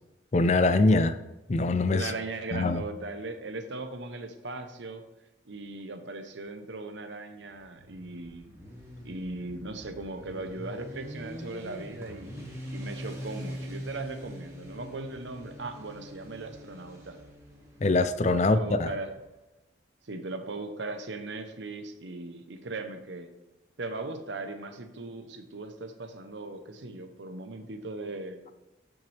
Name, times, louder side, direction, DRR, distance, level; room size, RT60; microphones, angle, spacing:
voice 1, 0.3-1.2 1.5-2.1 2.5-2.8 17.8-18.9, left 3 dB, 35° left, 11 dB, 0.4 m, -23 dB
voice 2, 1.9-5.0 5.5-8.5 9.0-12.3 12.7-17.2 18.3-19.1 20.0-23.3 23.8-28.5, right 2 dB, 70° right, 7 dB, 0.8 m, -38 dB
Motorcycle, 7.5-19.2, equal, 15° right, 1.4 m, -43 dB
8.8 x 6.2 x 3.4 m, 1.0 s
head